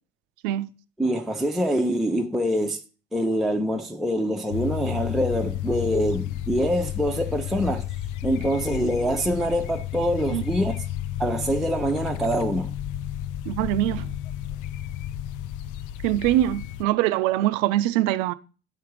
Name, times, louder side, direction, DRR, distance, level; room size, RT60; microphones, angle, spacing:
voice 1, 1.0-2.8 3.1-7.8 8.2-10.8 11.2-12.7, equal, ahead, 0.7 m, -25 dB
sound 1, 4.5-16.8, left 12 dB, 50° left, 0.5 m, -32 dB
voice 2, 13.5-14.1 16.0-18.3, right 14 dB, 80° right, 0.5 m, -23 dB
9.7 x 3.4 x 4.8 m
hypercardioid pair, 55°, 39 cm